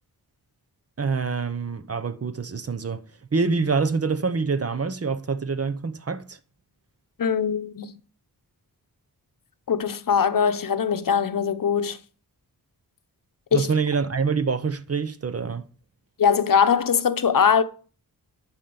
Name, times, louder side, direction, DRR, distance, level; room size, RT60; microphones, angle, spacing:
voice 1, 1.0-3.0 3.3-6.4 13.5-15.7, right 5 dB, 40° right, 0.9 m, -26 dB
voice 2, 7.2-7.9 9.7-12.0 13.5-13.7 16.2-17.6, left 7 dB, 60° left, 0.8 m, -21 dB
11.0 x 4.5 x 6.9 m
wide cardioid pair, 95°, 37 cm